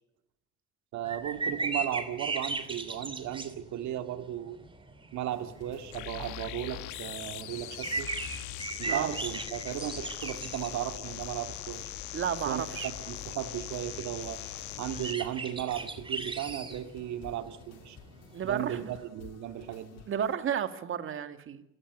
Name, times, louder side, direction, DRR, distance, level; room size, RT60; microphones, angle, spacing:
voice 1, 0.9-4.6 5.1-8.1 8.8-11.9 12.4-14.4 14.8-18.0 18.4-20.0, right 12 dB, 70° right, 8 dB, 2.4 m, -36 dB
sound 1, 1.0-19.0, right 3 dB, 15° right, 2.9 m, -39 dB
sound 2, 5.3-20.4, left 9 dB, 60° left, 2.5 m, -54 dB
sound 3, 5.9-15.1, left 15 dB, 90° left, 1.4 m, -41 dB
voice 2, 8.9-9.2 12.1-12.9 18.3-18.9 20.1-21.6, right 8 dB, 45° right, 9 dB, 2.1 m, -32 dB
27.5 x 16.5 x 9.8 m, 0.82 s
cardioid pair, 140°, 29 cm